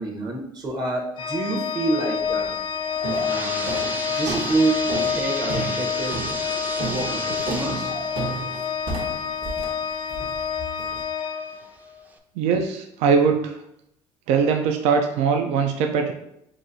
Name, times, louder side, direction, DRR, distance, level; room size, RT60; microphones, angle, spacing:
voice 1, 0.0-2.6 3.3-3.8 4.1-6.2 6.8-7.9, right 2 dB, 40° right, 1 dB, 0.9 m, -27 dB
Organ, 1.2-12.0, left 7 dB, 50° left, 0.4 m, -28 dB
sound 1, 2.2-2.5 3.0-11.0, right 3 dB, 55° right, 1.0 m, -33 dB
sound 2, 2.7-10.3 10.8-10.9 11.6-11.7 12.1-12.2, right 2 dB, 15° right, 0.4 m, -34 dB
voice 2, 12.4-13.6 14.3-16.1, right 6 dB, 80° right, 4 dB, 0.4 m, -21 dB
5.9 x 2.5 x 2.6 m, 0.78 s
cardioid pair, 120°, 11 cm